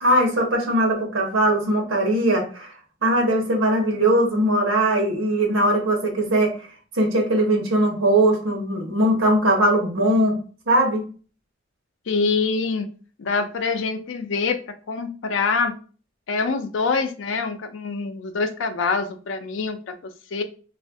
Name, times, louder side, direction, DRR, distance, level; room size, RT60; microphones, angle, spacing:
voice 1, 0.0-2.7 3.0-6.5 6.9-10.4 10.7-11.0, right 1 dB, 85° right, 2 dB, 0.9 m, -20 dB
voice 2, 12.1-12.9 13.2-15.7 16.3-20.4, left 4 dB, 70° left, 8 dB, 0.4 m, -25 dB
2.6 x 2.4 x 3.4 m, 0.39 s
head